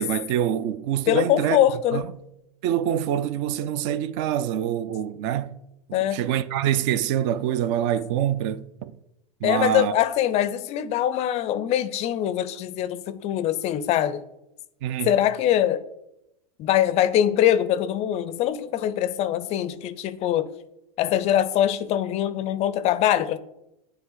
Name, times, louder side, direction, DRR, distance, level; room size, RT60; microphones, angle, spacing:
voice 1, 0.0-1.6 1.9-2.0 2.6-5.6 5.9-8.9 9.4-9.9 14.8-15.1, right 10 dB, 50° right, 0.4 m, -25 dB
voice 2, 1.1-2.0 5.9-6.2 9.4-14.2 15.0-15.8 16.6-20.5 21.0-23.4, left 11 dB, 35° left, 0.4 m, -23 dB
8.9 x 3.2 x 3.9 m
hypercardioid pair, 115°, 20 cm